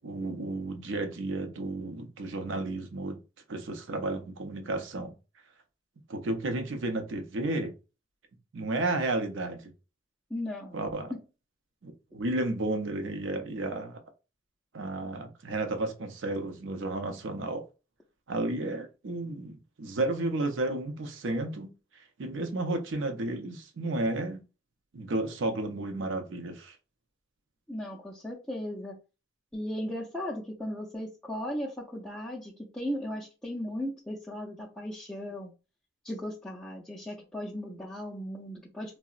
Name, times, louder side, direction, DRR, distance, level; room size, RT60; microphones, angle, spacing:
voice 1, 0.0-3.2 3.5-5.1 6.1-7.7 8.5-9.7 10.7-11.1 11.8-14.0 14.7-17.6 18.3-21.7 22.2-24.4 24.9-26.8, right 2 dB, 70° right, 0.5 m, -32 dB
voice 2, 10.3-10.8 27.7-29.0 29.5-35.5 36.0-39.0, equal, 5° left, 0.3 m, -36 dB
3.7 x 2.0 x 2.4 m
head